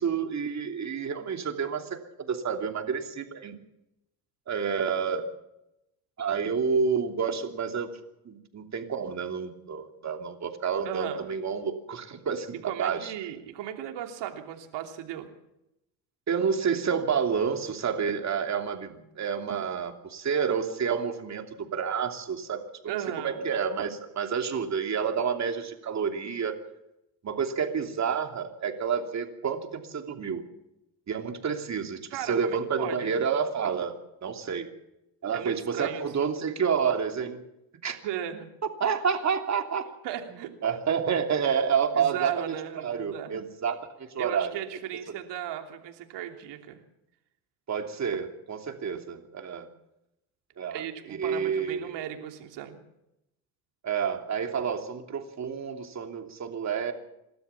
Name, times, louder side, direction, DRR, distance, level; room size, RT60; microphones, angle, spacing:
voice 1, 0.0-3.6 4.5-5.3 6.2-8.0 8.2-13.1 16.3-26.6 27.2-30.4 31.1-33.9 34.2-34.7 35.2-37.4 37.8-38.0 38.8-39.9 40.6-44.5 47.7-49.7 50.6-52.0 53.8-56.9, right 6 dB, 40° right, 4 dB, 3.0 m, -29 dB
voice 2, 10.8-11.3 12.6-15.3 22.9-23.4 32.1-33.2 35.3-36.0 38.0-38.5 40.0-40.5 42.0-43.4 44.2-46.8 50.7-52.8, right 10 dB, 70° right, 4 dB, 3.1 m, -36 dB
28.0 x 13.0 x 7.2 m, 0.88 s
supercardioid pair, 95°, 44 cm